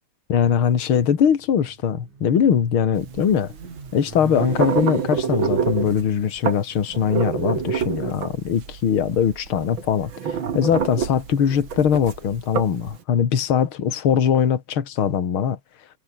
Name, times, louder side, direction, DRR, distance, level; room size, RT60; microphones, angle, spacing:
voice 1, 0.3-3.5 3.9-15.6, left 8 dB, 50° left, 2.7 m, -21 dB
Motorcycle, 1.1-9.3, right 4 dB, 85° right, 6.4 m, -41 dB
sound 1, 3.0-13.0, right 7 dB, 45° right, 2.4 m, -27 dB
omnidirectional pair, 3.3 m